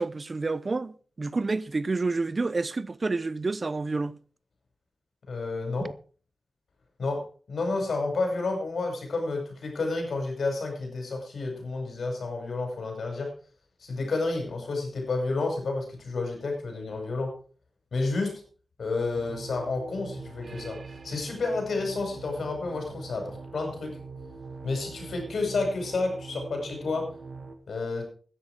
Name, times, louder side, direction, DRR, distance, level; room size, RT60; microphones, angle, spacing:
voice 1, 0.0-4.1 5.8-5.9, right 3 dB, 40° right, 0.8 m, -29 dB
voice 2, 5.3-5.9 7.0-13.3 13.8-17.3 17.9-18.4 18.8-24.0 24.6-27.1 27.7-28.1, left 3 dB, 80° left, 5.7 m, -30 dB
sound 1, 19.1-27.6, right 4 dB, 55° right, 1.9 m, -43 dB
14.5 x 10.5 x 4.9 m
wide cardioid pair, 105°, 0 cm